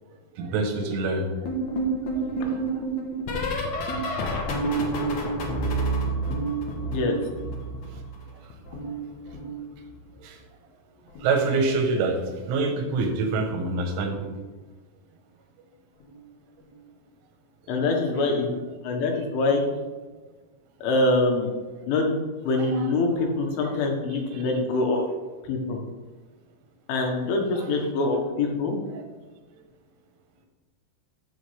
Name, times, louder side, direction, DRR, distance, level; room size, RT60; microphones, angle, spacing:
voice 1, 0.4-1.5 2.2-2.7 3.9-4.3 8.7-8.8 10.2-10.4 11.2-12.2 12.5-14.3 22.6-22.9 23.6-23.7 24.3-24.4 29.0-29.1, right 3 dB, 90° right, 4 dB, 3.7 m, -26 dB
sound 1, 1.4-8.2 8.5-10.1 11.1-11.4 11.7-12.0 13.6-13.8 14.2-14.4 16.0-16.1, right 2 dB, 70° left, 1.8 m, -29 dB
voice 2, 17.7-18.5 18.8-19.6 20.8-21.5 21.9-22.1 22.4-25.1 25.5-25.8 26.9-28.7, left 2 dB, 85° left, 1 dB, 4.1 m, -24 dB
14.0 x 7.2 x 3.5 m, 1.3 s
omnidirectional pair, 5.4 m